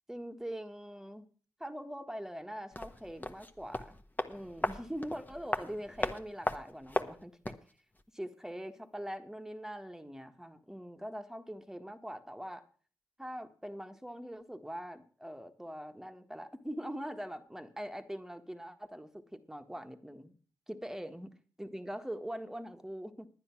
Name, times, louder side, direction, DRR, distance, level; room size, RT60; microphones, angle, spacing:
voice 1, 0.1-1.3 1.6-4.0 4.3-7.6 8.1-12.6 13.2-20.4 20.7-21.3 21.6-23.3, equal, 5° right, 7 dB, 1.6 m, -43 dB
sound 1, 2.7-7.7 8.0-8.1, left 1 dB, 20° left, 1.4 m, -37 dB
10.0 x 9.9 x 6.0 m, 0.41 s
supercardioid pair, 45°, 8 cm